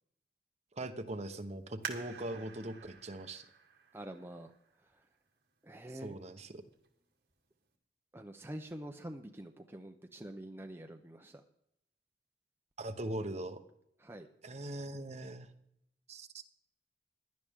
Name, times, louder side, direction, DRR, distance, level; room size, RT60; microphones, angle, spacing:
voice 1, 0.7-3.4 5.9-6.6 12.8-13.6 14.4-15.5 16.1-16.3, right 1 dB, 40° right, 7 dB, 1.0 m, -41 dB
sound 1, 1.8-5.2 5.8-5.9 6.5-6.9 7.3-7.4, right 6 dB, 60° right, 2.1 m, -48 dB
voice 2, 3.9-4.5 4.9-5.0 5.6-6.2 8.1-11.4 14.0-14.3, right 1 dB, 15° right, 5 dB, 0.6 m, -46 dB
16.5 x 11.5 x 3.6 m, 0.77 s
head